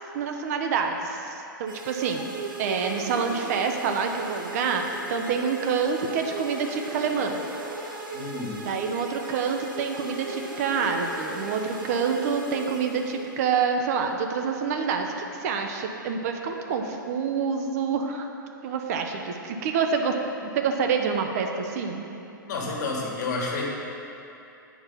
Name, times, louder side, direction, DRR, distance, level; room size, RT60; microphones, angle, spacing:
voice 1, 0.1-4.8 5.1-7.4 8.6-15.1 15.4-18.3 18.6-20.1 20.5-22.1, right 6 dB, 50° right, 4 dB, 0.7 m, -27 dB
sound 1, 1.7-13.5, right 2 dB, 75° right, 1.3 m, -37 dB
voice 2, 8.1-8.6 22.4-23.7, left 3 dB, 55° left, -2 dB, 1.6 m, -30 dB
8.7 x 4.7 x 5.4 m, 2.8 s
figure-of-eight pair, 110°, 11 cm